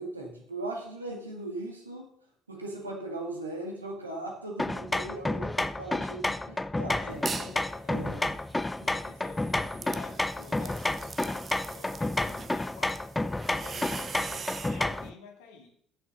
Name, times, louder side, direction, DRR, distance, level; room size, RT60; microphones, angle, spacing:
voice 1, 0.0-2.1 2.5-7.2 7.9-8.3 8.8-8.9, right 2 dB, 85° right, 0 dB, 1.8 m, -38 dB
sound 1, 4.6-15.1, left 2 dB, 10° left, 0.4 m, -31 dB
voice 2, 6.9-8.4 8.8-13.0 13.6-15.8, left 5 dB, 65° left, 2 dB, 2.1 m, -50 dB
sound 2, 7.1-7.6 8.0-14.8, right 6 dB, 35° right, 0.7 m, -42 dB
9.2 x 7.0 x 5.4 m, 0.65 s
figure-of-eight pair, 55°, 0 cm